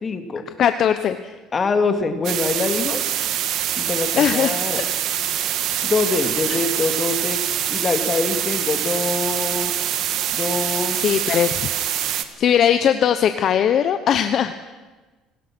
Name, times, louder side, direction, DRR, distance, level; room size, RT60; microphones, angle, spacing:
voice 1, 0.0-0.4 1.5-3.0 3.8-4.8 5.8-7.4 7.7-9.7 10.3-11.0, left 4 dB, 25° left, 7 dB, 2.3 m, -24 dB
voice 2, 0.6-1.3 4.2-4.6 6.5-6.6 10.9-11.6 12.4-14.5, left 9 dB, 45° left, 9 dB, 1.0 m, -19 dB
sound 1, 2.2-12.2, right 11 dB, 60° right, 1.6 m, -24 dB
28.0 x 19.0 x 6.1 m, 1.2 s
cardioid pair, 140°, 0 cm